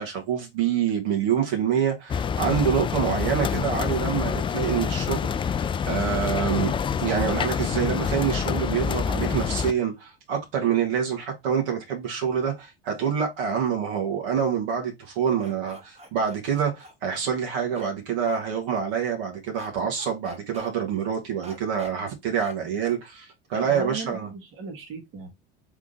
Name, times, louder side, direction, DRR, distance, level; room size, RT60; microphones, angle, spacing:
voice 1, 0.0-6.7 7.0-24.3, right 8 dB, 65° right, 1.7 m, -26 dB
sound 1, 2.1-9.7, left 7 dB, 20° left, 0.3 m, -27 dB
sound 2, 15.4-16.9 17.7-17.9 18.2-18.4 19.5-19.7 20.0-20.7 21.4-21.9 22.4-22.5 22.8-23.0, right 1 dB, 20° right, 1.6 m, -44 dB
voice 2, 23.5-25.3, right 4 dB, 45° right, 1.6 m, -37 dB
3.6 x 3.5 x 3.8 m
hypercardioid pair, 70°, 29 cm